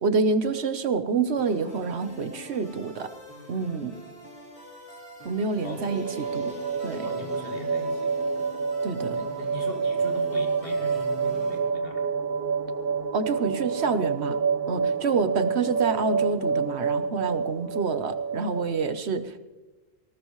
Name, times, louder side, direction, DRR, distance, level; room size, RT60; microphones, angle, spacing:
voice 1, 0.0-3.1 3.5-3.9 5.2-6.5 6.8-7.1 8.8-9.2 13.1-14.4 14.7-19.4, right 4 dB, 85° right, 10 dB, 1.3 m, -27 dB
sound 1, 1.4-11.6, left 2 dB, 85° left, 4.1 m, -45 dB
sound 2, 5.8-18.7, right 5 dB, 50° right, 1.3 m, -28 dB
voice 2, 7.0-8.5 9.2-12.1, left 2 dB, 60° left, 2 dB, 2.3 m, -41 dB
19.5 x 18.0 x 3.2 m, 1.2 s
omnidirectional pair, 1.1 m